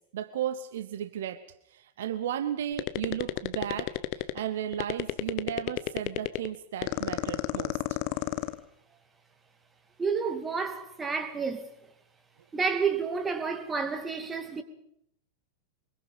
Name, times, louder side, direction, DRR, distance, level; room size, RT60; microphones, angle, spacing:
voice 1, 0.1-1.4 1.7-8.0, right 10 dB, 60° right, 1.1 m, -34 dB
sound 1, 2.8-4.5 4.7-6.5 6.8-8.6, left 20 dB, 45° left, 1.1 m, -29 dB
voice 2, 10.0-11.7 12.5-14.6, right 5 dB, 15° right, 2.5 m, -30 dB
24.0 x 22.5 x 5.5 m
figure-of-eight pair, 90°, 0 cm